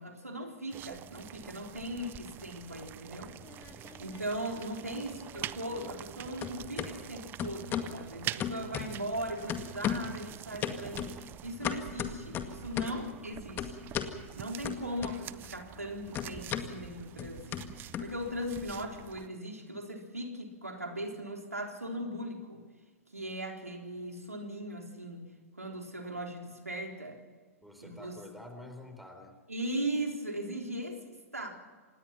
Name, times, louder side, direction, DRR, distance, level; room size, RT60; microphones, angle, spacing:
voice 1, 0.0-3.3 3.7-3.8 4.0-11.1 11.4-13.9 14.4-17.6 18.0-22.6 23.1-25.2 25.6-27.2 27.8-28.2 29.5-31.0 31.3-31.5, right 1 dB, 90° right, 2 dB, 3.8 m, -38 dB
sound 1, 0.7-19.3, right 13 dB, 25° right, 0.6 m, -46 dB
sound 2, 3.3-4.2 4.5-6.1 6.4-6.9 7.4-8.0 8.4-9.2 9.5-10.2 10.6-13.1 13.6-14.2 14.6-15.5 15.7-18.6, left 9 dB, 25° left, 1.9 m, -36 dB
voice 2, 3.8-4.2 13.1-13.6 27.6-29.3, left 1 dB, ahead, 5 dB, 4.0 m, -49 dB
26.5 x 19.5 x 5.9 m, 1.4 s
figure-of-eight pair, 105°, 8 cm